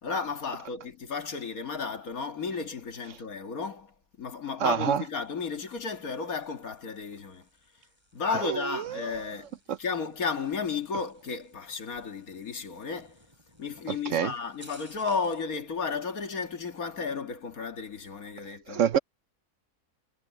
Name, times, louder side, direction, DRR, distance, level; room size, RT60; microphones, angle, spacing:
voice 1, 0.0-7.5 8.1-13.2 13.6-18.8, left 5 dB, 75° left, 2.3 m, -33 dB
voice 2, 4.6-5.0 8.4-9.2 9.7-9.8 13.9-14.3 18.7-19.0, right 8 dB, 65° right, 1.0 m, -27 dB
sound 1, 4.8-15.5, right 1 dB, 20° right, 6.2 m, -59 dB
omnidirectional pair, 1.5 m